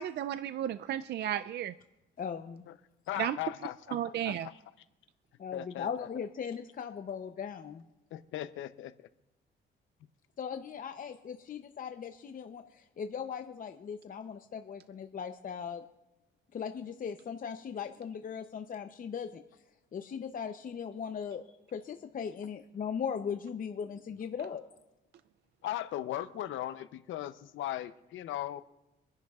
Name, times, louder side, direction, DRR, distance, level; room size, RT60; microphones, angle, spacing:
voice 1, 0.0-1.7 3.2-3.4 3.9-4.5, right 10 dB, 60° right, 0.4 m, -33 dB
voice 2, 2.2-2.6 5.4-7.8 10.4-12.6 13.0-15.8 16.5-19.4 19.9-21.4 21.7-24.6, left 7 dB, 45° left, 0.7 m, -38 dB
voice 3, 3.1-3.8 4.0-4.5 5.5-6.1 8.1-8.9 25.6-28.6, left 13 dB, 80° left, 0.7 m, -38 dB
25.5 x 10.5 x 2.4 m
cardioid pair, 90°, 20 cm